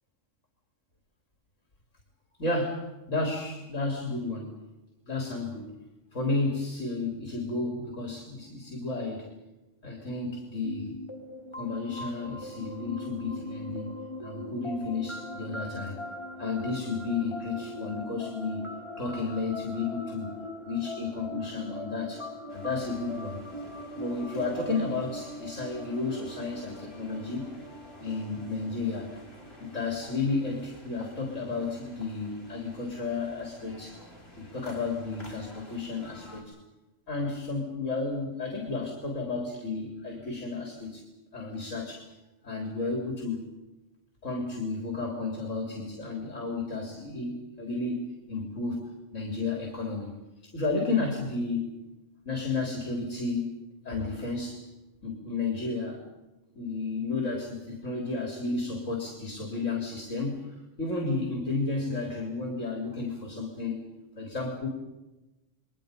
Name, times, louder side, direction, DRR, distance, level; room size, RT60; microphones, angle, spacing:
voice 1, 2.4-4.6 5.1-5.7 6.1-9.3 9.8-10.9 11.5-16.0 16.4-18.7 19.0-20.4 20.7-23.4 24.0-27.4 28.0-29.1 29.6-34.0 34.4-36.5 37.1-41.0 41.3-42.1 42.4-43.5 44.2-48.0 48.3-50.1 50.4-51.7 52.3-53.6 53.9-54.7 55.0-56.0 56.6-60.5 60.8-63.8 64.2-64.7, left 3 dB, 80° left, 1 dB, 4.0 m, -32 dB
sound 1, 10.6-30.2, left 1 dB, 20° left, 3.0 m, -41 dB
sound 2, 22.5-36.4, left 1 dB, 55° left, 5.9 m, -51 dB
30.0 x 22.5 x 5.3 m, 1.1 s
omnidirectional pair, 1.3 m